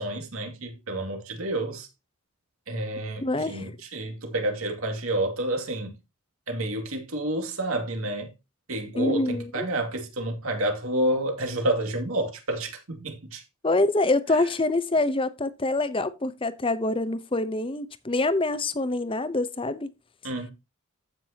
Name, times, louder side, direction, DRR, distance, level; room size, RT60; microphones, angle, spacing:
voice 1, 0.0-1.9 2.7-5.9 6.5-8.3 8.7-13.4 14.3-14.4 20.2-20.5, right 1 dB, 85° right, 2.4 m, -29 dB
voice 2, 3.2-3.7 9.0-9.7 13.6-19.9, left 2 dB, 25° left, 0.7 m, -25 dB
14.5 x 6.0 x 2.8 m
head